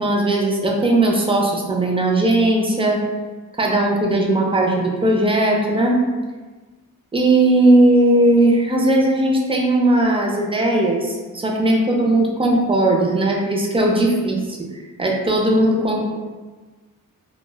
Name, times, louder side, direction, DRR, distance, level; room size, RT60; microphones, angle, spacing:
voice 1, 0.0-3.0 3.6-6.0 7.1-14.6 15.0-16.1, right 1 dB, 15° right, -1 dB, 0.4 m, -18 dB
2.1 x 2.0 x 3.2 m, 1.3 s
wide cardioid pair, 95°, 36 cm